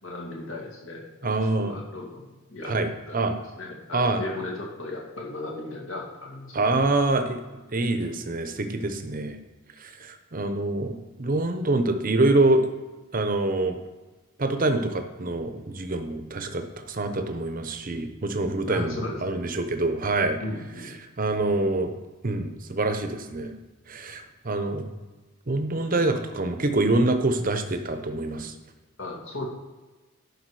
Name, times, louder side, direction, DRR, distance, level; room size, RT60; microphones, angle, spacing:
voice 1, 0.0-1.0 1.6-6.7 18.7-19.4 20.4-20.9 29.0-29.5, left 2 dB, 60° left, -1 dB, 2.1 m, -36 dB
voice 2, 1.2-1.8 2.6-3.3 3.9-4.2 6.5-7.4 7.7-9.4 9.8-12.7 13.1-13.8 14.4-20.4 21.2-22.0 22.2-23.5 23.9-24.9 25.5-28.5, right 2 dB, 40° right, 7 dB, 0.8 m, -25 dB
11.0 x 4.8 x 4.8 m, 1.2 s
head